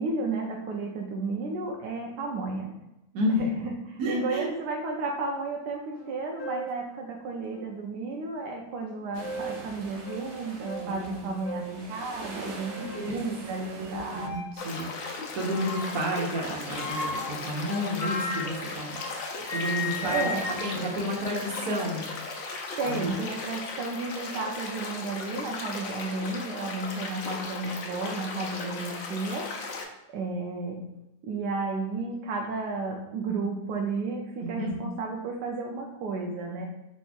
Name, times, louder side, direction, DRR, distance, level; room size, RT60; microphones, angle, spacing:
voice 1, 0.0-2.7 3.3-14.3 20.0-20.5 22.8-29.5 30.1-30.8 31.2-36.6, right 3 dB, 85° right, 0 dB, 1.2 m, -33 dB
voice 2, 3.1-3.5 4.0-4.5 10.7-11.3 12.8-13.2 13.6-14.9 15.3-19.0 19.5-22.0 22.8-23.1 34.4-34.8, equal, 70° right, -2 dB, 1.5 m, -31 dB
sound 1, 6.0-6.1 6.4-6.8 7.5-7.6 8.9-9.6 10.0-10.2 10.6-10.8 11.4-11.7 12.4-13.1 14.1-14.6 15.5-16.1 16.7-19.2 19.5-21.8, left 2 dB, 45° left, 0.5 m, -36 dB
sound 2, 9.1-14.3, right 2 dB, 55° right, 0.9 m, -43 dB
sound 3, 14.6-29.8, left 3 dB, 60° left, 0.8 m, -37 dB
4.5 x 4.3 x 2.4 m, 0.90 s
omnidirectional pair, 1.8 m